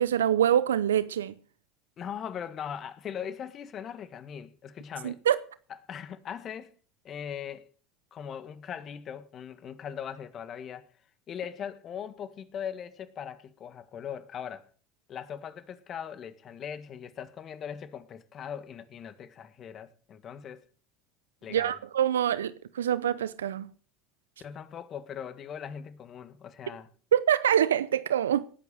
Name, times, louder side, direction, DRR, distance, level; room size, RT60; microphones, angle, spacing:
voice 1, 0.0-1.3 5.0-5.4 21.5-23.7 27.1-28.5, right 10 dB, 85° right, 0.6 m, -25 dB
voice 2, 2.0-5.2 5.9-6.7 7.0-7.7 8.1-10.9 11.3-14.7 15.1-20.6 21.4-21.8 24.4-26.9, left 8 dB, 40° left, 1.6 m, -40 dB
19.0 x 8.5 x 6.5 m
hypercardioid pair, 75°, 0 cm